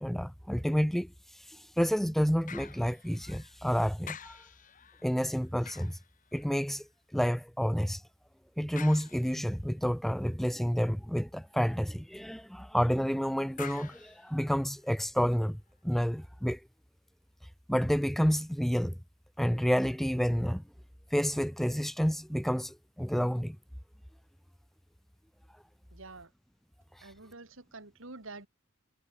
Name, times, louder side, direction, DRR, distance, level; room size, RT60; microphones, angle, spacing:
voice 1, 0.0-4.5 5.0-6.0 6.3-8.0 8.6-15.6 15.8-16.6 17.7-18.9 19.4-20.6 21.1-23.6 27.0-27.1, equal, ahead, 0.7 m, -29 dB
sound 1, 2.5-3.7 4.0-6.9 8.8-9.7 13.6-15.0 15.6-15.7, left 8 dB, 40° left, 1.8 m, -49 dB
voice 2, 25.9-26.3 27.0-28.5, right 3 dB, 70° right, 2.5 m, -47 dB
head